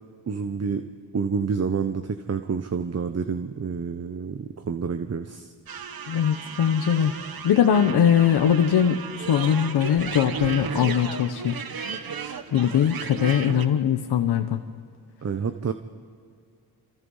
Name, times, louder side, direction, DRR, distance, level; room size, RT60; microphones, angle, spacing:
voice 1, 0.3-0.8 1.1-5.5 15.2-15.7, right 6 dB, 40° right, 8 dB, 1.0 m, -28 dB
sound 1, 5.7-13.6, right 6 dB, 60° right, 1.4 m, -34 dB
voice 2, 6.1-7.1 7.4-11.6 11.9-12.1 12.5-14.6, left 9 dB, 80° left, 6 dB, 1.2 m, -21 dB
28.0 x 27.5 x 5.6 m, 2.2 s
cardioid pair, 95°, 40 cm